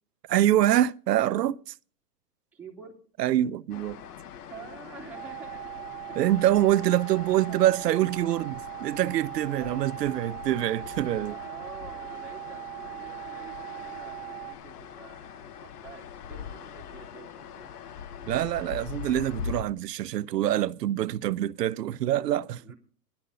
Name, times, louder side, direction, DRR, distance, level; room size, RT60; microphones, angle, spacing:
voice 1, 0.3-1.7 3.2-4.0 6.2-11.4 18.3-22.6, right 13 dB, 80° right, 0.8 m, -25 dB
voice 2, 2.5-2.9 4.5-5.8 6.1-6.3 7.0-8.0 8.8-8.9 9.4-9.8 11.2-17.8 22.6-22.7, right 5 dB, 5° right, 2.5 m, -48 dB
sound 1, 3.7-19.6, left 7 dB, 70° left, 1.3 m, -42 dB
sound 2, 5.1-14.5, right 30 dB, 35° left, 4.0 m, -40 dB
12.5 x 11.0 x 5.5 m
hypercardioid pair, 130°, 48 cm